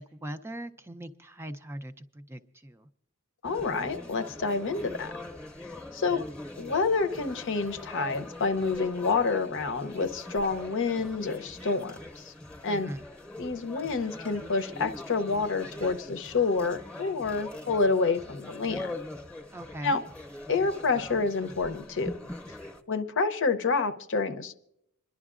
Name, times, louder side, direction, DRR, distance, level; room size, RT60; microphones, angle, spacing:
voice 1, 0.0-2.9 12.6-13.0 19.5-20.0, right 1 dB, 10° right, 9 dB, 0.4 m, -40 dB
voice 2, 3.4-5.1 5.9-6.2 6.6-12.3 12.6-12.9 13.4-19.0 19.8-20.0 20.5-22.2 22.9-24.6, left 4 dB, 60° left, 9 dB, 0.7 m, -28 dB
sound 1, 3.4-22.8, left 1 dB, 5° left, 0.8 m, -42 dB
27.0 x 11.0 x 2.5 m, 0.77 s
head